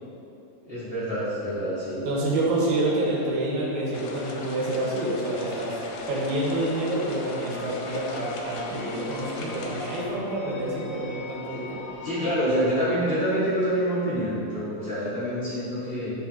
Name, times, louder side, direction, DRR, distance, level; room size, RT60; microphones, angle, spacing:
voice 1, 0.6-2.0 12.0-16.1, equal, 35° left, -13 dB, 0.9 m, -26 dB
voice 2, 2.0-5.8 6.1-11.8, right 1 dB, 75° right, -5 dB, 2.5 m, -27 dB
sound 1, 3.9-10.0, left 3 dB, 85° left, 2.1 m, -38 dB
sound 2, 5.1-13.1, left 2 dB, 70° left, 2.1 m, -44 dB
7.3 x 5.2 x 2.8 m, 2.8 s
omnidirectional pair, 3.5 m